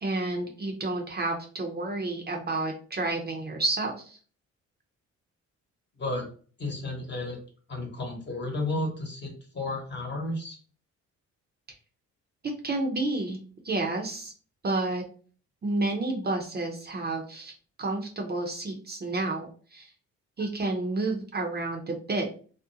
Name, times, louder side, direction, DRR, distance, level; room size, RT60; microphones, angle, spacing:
voice 1, 0.0-4.2 12.4-13.4 13.6-14.3 14.6-15.0 15.6-17.5 17.8-19.9 20.4-22.3, right 2 dB, 35° right, 1 dB, 0.6 m, -30 dB
voice 2, 6.0-6.3 6.6-7.4 7.7-10.6, left 2 dB, 35° left, 0 dB, 1.0 m, -32 dB
2.5 x 2.1 x 2.6 m, 0.41 s
cardioid pair, 90°, 30 cm